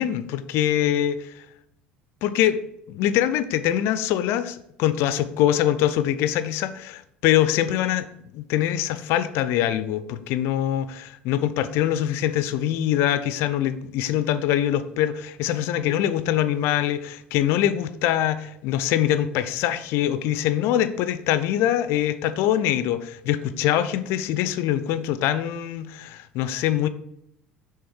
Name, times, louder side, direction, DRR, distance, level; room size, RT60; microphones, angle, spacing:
voice 1, 0.0-1.4 2.2-2.6 2.9-8.1 8.3-26.9, left 11 dB, 50° left, 13 dB, 0.5 m, -23 dB
6.2 x 3.5 x 4.5 m, 0.77 s
figure-of-eight pair, 65°, 5 cm